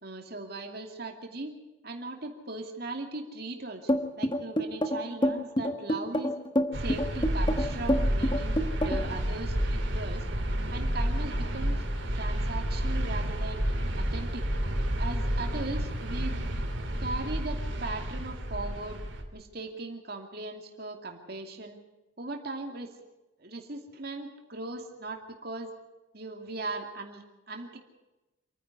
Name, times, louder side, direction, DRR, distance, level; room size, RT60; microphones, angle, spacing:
voice 1, 0.0-1.5 1.8-6.3 6.7-8.6 8.8-10.3 10.7-11.8 12.1-13.6 14.0-14.5 15.0-16.4 17.0-19.0 19.3-21.8 22.2-22.9 23.4-25.7 26.1-27.8, right 2 dB, 55° right, 4 dB, 2.6 m, -38 dB
sound 1, 3.9-9.1, equal, 25° left, 1.3 m, -27 dB
sound 2, 6.7-19.2, equal, 75° right, 3.1 m, -30 dB
27.0 x 10.0 x 9.7 m, 1.0 s
head